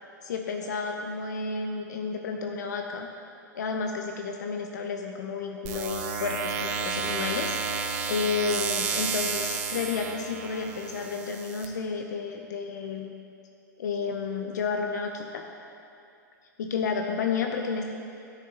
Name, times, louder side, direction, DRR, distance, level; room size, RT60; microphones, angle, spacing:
voice 1, 0.2-3.1 3.5-7.6 8.1-13.1 13.8-15.4 16.6-17.8, left 5 dB, 65° left, 3 dB, 0.7 m, -31 dB
sound 1, 5.7-11.7, right 5 dB, 45° right, 1.2 m, -31 dB
13.0 x 9.9 x 2.9 m, 2.5 s
figure-of-eight pair, 105°, 10 cm